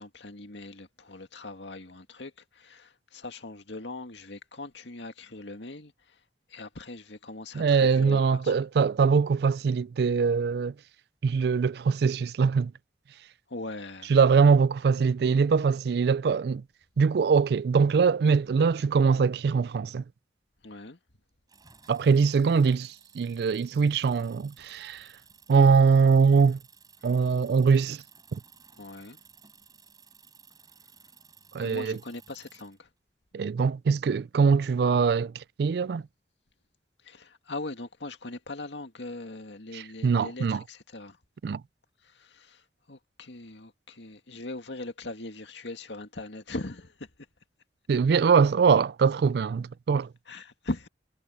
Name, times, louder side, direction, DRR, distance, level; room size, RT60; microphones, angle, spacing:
voice 1, 0.0-6.2 6.5-8.6 13.5-14.1 20.6-21.0 28.8-29.2 31.6-32.9 37.0-41.2 42.0-47.1 50.3-50.9, left 2 dB, 85° left, 2.1 m, -40 dB
voice 2, 7.5-10.7 11.2-12.7 14.1-16.6 17.0-20.0 21.9-25.1 25.5-26.6 27.0-28.0 31.5-32.0 33.3-36.0 39.7-40.6 41.4-41.6 47.9-50.1, right 5 dB, 60° right, 0.3 m, -22 dB
sound 1, 21.5-32.8, right 6 dB, 25° right, 4.3 m, -56 dB
head